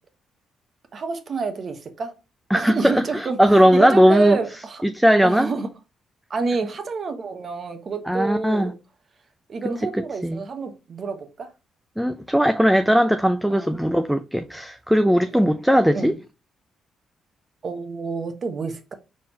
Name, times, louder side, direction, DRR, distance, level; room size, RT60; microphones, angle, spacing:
voice 1, 0.9-2.2 2.5-4.8 5.2-5.7 6.3-8.8 9.5-11.5 13.5-13.7 15.3-15.4 15.9-16.1 17.6-18.9, right 4 dB, 50° right, 1.0 m, -28 dB
voice 2, 2.5-4.4 4.8-5.5 8.1-8.7 10.2-10.4 12.0-16.2, equal, ahead, 0.5 m, -18 dB
4.2 x 3.7 x 2.9 m
supercardioid pair, 65°, 0 cm